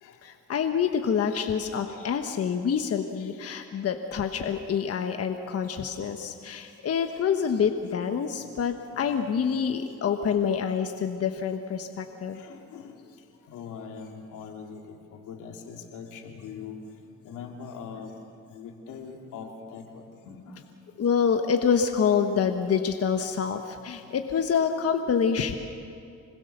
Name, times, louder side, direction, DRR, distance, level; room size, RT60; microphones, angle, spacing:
voice 1, 0.2-12.4 21.0-25.5, left 7 dB, 50° left, 6 dB, 1.3 m, -27 dB
voice 2, 12.3-12.9 13.5-16.8 17.2-18.1 18.5-20.6 24.1-24.2, left 6 dB, 90° left, 2 dB, 2.7 m, -42 dB
26.5 x 21.0 x 6.7 m, 2.4 s
cardioid pair, 90°, 30 cm